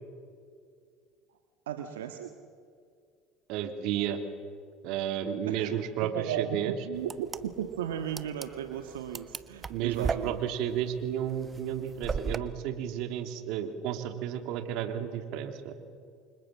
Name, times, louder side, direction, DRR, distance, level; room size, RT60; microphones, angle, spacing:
voice 1, 1.7-2.3 5.5-5.7 6.1-7.3 7.6-10.4, right 10 dB, 85° right, 5 dB, 1.6 m, -35 dB
voice 2, 3.5-4.2 4.8-6.7 9.7-15.7, right 10 dB, 65° right, 7 dB, 3.0 m, -32 dB
sound 1, 7.0-12.4, right 5 dB, 30° right, 1.4 m, -37 dB
29.5 x 25.5 x 7.6 m, 2.2 s
hypercardioid pair, 75°, 0 cm